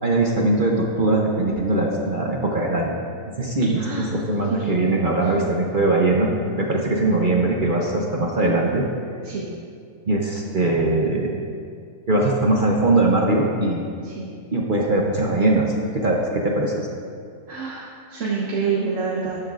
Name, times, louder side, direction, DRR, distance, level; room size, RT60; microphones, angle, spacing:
voice 1, 0.0-3.0 3.4-6.3 6.6-8.8 10.1-11.4 12.1-13.8 14.5-16.9, right 2 dB, 40° right, -1 dB, 0.8 m, -21 dB
voice 2, 17.5-19.4, right 5 dB, 60° right, -4 dB, 1.5 m, -27 dB
13.5 x 11.0 x 2.5 m, 2.3 s
omnidirectional pair, 1.5 m